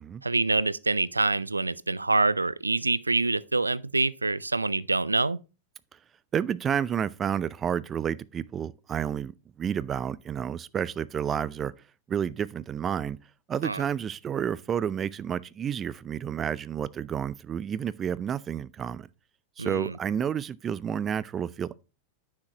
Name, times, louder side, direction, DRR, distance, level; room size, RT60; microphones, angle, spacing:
voice 1, 0.2-5.4 13.6-13.8 19.6-19.9, right 3 dB, 85° right, 0.4 m, -26 dB
voice 2, 6.3-9.3 9.6-11.7 12.1-13.2 13.5-19.1 19.6-21.8, right 8 dB, 25° right, 0.4 m, -30 dB
9.5 x 6.6 x 2.9 m
figure-of-eight pair, 95°, 0 cm